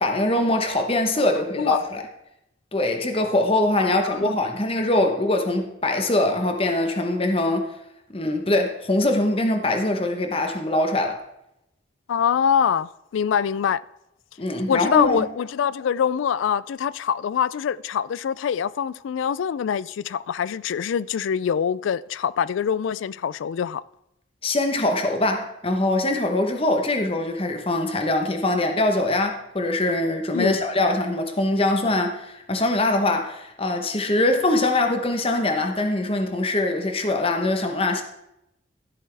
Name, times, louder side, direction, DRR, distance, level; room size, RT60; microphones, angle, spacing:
voice 1, 0.0-2.0 2.7-7.7 8.1-11.2 14.4-15.3 24.4-38.0, left 2 dB, 30° left, 1.0 m, -23 dB
voice 2, 3.8-4.3 12.1-13.8 14.7-23.8 30.3-30.6, left 7 dB, 75° left, 0.3 m, -24 dB
13.5 x 7.6 x 3.4 m
head